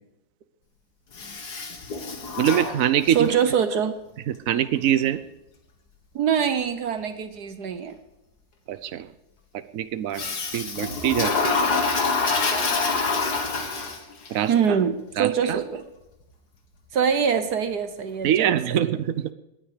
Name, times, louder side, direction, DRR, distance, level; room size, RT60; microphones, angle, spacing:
Toilet flush, 1.1-3.4 10.1-14.3, left 4 dB, 50° left, 2.3 m, -26 dB
voice 1, 2.4-3.3 4.3-5.2 8.7-9.1 9.7-10.3 10.5-11.6 14.3-14.8 15.2-15.6 18.2-19.3, right 10 dB, 75° right, 13 dB, 0.7 m, -24 dB
voice 2, 3.1-3.9 6.1-8.0 14.5-15.8 16.9-19.0, right 7 dB, 60° right, 10 dB, 1.3 m, -24 dB
18.5 x 10.0 x 5.0 m, 0.94 s
omnidirectional pair, 2.3 m